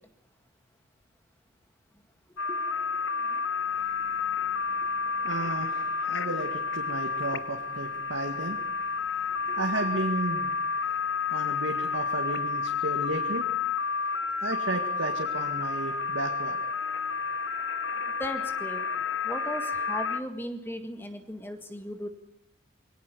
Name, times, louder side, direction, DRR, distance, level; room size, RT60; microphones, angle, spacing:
voice 1, 2.3-2.7 3.3-3.4 5.4-5.5 9.5-9.7 18.2-18.8 19.2-22.1, equal, 10° left, 6 dB, 1.9 m, -37 dB
sound 1, 2.4-20.2, left 5 dB, 65° left, 1.1 m, -30 dB
voice 2, 5.1-8.6 9.6-10.5 11.3-13.5 14.4-16.6, right 2 dB, 65° right, 2 dB, 2.0 m, -33 dB
22.5 x 18.0 x 7.0 m, 0.84 s
head